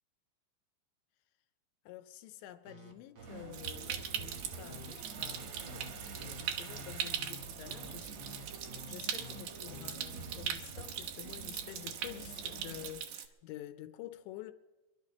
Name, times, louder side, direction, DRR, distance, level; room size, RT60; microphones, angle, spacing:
voice 1, 1.9-14.5, left 14 dB, 80° left, 2.8 m, -49 dB
sound 1, 2.7-10.4, left 2 dB, 40° right, 1.4 m, -51 dB
sound 2, 3.2-12.9, right 4 dB, 60° right, 1.8 m, -48 dB
Stream, 3.5-13.3, right 9 dB, 85° right, 2.0 m, -41 dB
26.0 x 11.5 x 4.2 m
omnidirectional pair, 5.5 m